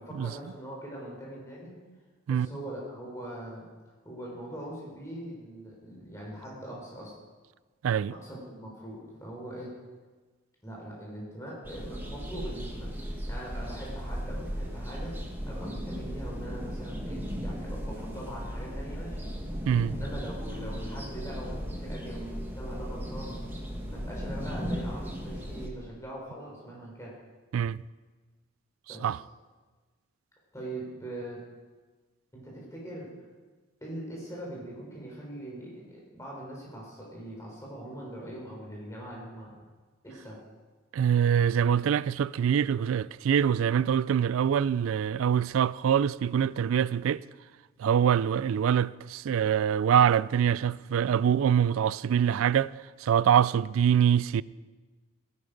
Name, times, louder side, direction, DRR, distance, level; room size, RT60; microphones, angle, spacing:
voice 1, 0.0-1.7 2.3-3.7 4.0-7.1 8.1-9.7 10.6-19.3 19.8-23.4 23.9-27.2 28.9-29.2 30.5-31.4 32.3-33.1 33.8-39.5 40.0-40.4, right 1 dB, 15° left, 3.7 m, -42 dB
sound 1, 11.6-25.7, equal, 10° right, 1.3 m, -36 dB
voice 2, 19.7-20.0 27.5-27.8 29.0-29.2 40.9-47.2 47.8-52.7 53.0-54.4, right 8 dB, 75° right, 0.3 m, -24 dB
15.0 x 11.0 x 5.2 m
head